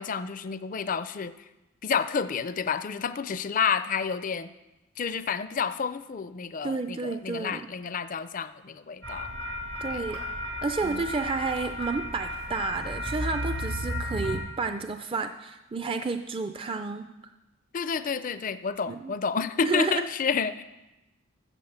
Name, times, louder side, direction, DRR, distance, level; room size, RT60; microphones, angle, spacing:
voice 1, 0.0-1.5 1.8-4.5 5.0-9.3 9.8-10.0 10.8-11.1 17.7-20.6, left 6 dB, 40° left, 13 dB, 0.4 m, -30 dB
voice 2, 6.6-7.7 9.8-10.2 10.6-17.1 18.9-19.1 19.6-20.0, right 4 dB, 25° right, 8 dB, 0.4 m, -31 dB
sound 1, 9.0-14.4, left 1 dB, 80° right, 3.5 m, -33 dB
14.5 x 7.2 x 6.9 m, 1.0 s
head